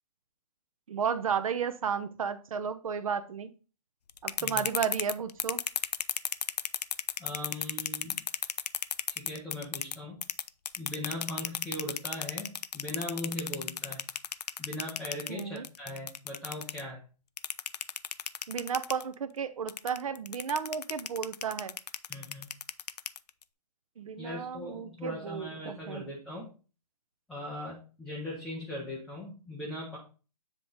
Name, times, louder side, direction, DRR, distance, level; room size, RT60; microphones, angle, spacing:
voice 1, 0.9-3.5 4.2-5.6 15.3-15.6 18.5-21.8 24.0-26.1, right 7 dB, 60° right, 0.6 m, -33 dB
sound 1, 4.1-10.0 10.2-16.8 17.4-19.0 19.7-23.4, left 8 dB, 85° left, 0.4 m, -33 dB
voice 2, 7.2-8.2 9.1-10.2 10.8-14.0 14.6-17.0 22.1-22.5 24.2-26.5 27.3-30.0, left 1 dB, ahead, 0.4 m, -39 dB
7.6 x 3.6 x 3.8 m
hypercardioid pair, 160°, 20 cm